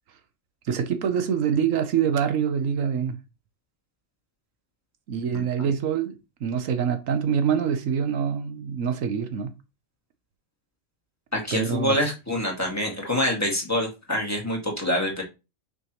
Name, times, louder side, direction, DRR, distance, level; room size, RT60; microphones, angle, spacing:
voice 1, 0.7-3.2 5.1-9.5 11.5-12.0, right 7 dB, 80° right, 1.2 m, -25 dB
voice 2, 11.3-15.2, left 1 dB, 10° left, 1.9 m, -26 dB
6.0 x 5.8 x 3.0 m
omnidirectional pair, 1.3 m